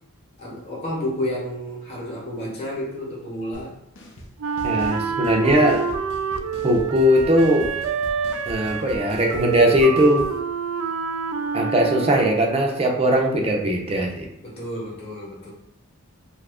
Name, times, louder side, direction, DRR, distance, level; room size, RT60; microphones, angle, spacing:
voice 1, 0.4-3.7 14.4-15.5, left 1 dB, 30° left, -6 dB, 0.9 m, -31 dB
sound 1, 3.5-3.7 3.9-4.3 4.6-10.4, equal, 60° left, 0.6 m, -40 dB
Wind instrument woodwind instrument, 4.4-12.6, right 6 dB, 90° right, 0.3 m, -28 dB
voice 2, 4.6-5.8 6.6-7.7 8.5-10.3 11.5-14.3, equal, 30° right, 1 dB, 0.5 m, -19 dB
2.8 x 2.4 x 3.4 m, 0.80 s
head